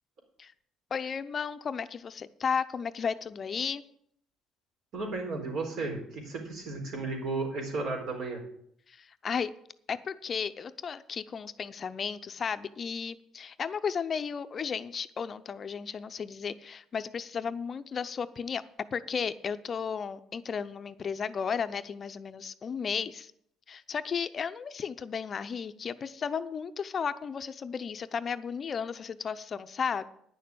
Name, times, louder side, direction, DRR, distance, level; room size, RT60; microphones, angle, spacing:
voice 1, 0.9-3.8 8.9-9.5 9.9-18.6 18.9-23.3 23.7-30.0, left 6 dB, 40° left, 12 dB, 0.6 m, -34 dB
voice 2, 4.9-8.4, right 3 dB, 65° right, 1 dB, 4.2 m, -34 dB
9.9 x 6.7 x 8.5 m, 0.69 s
cardioid pair, 110°, 0 cm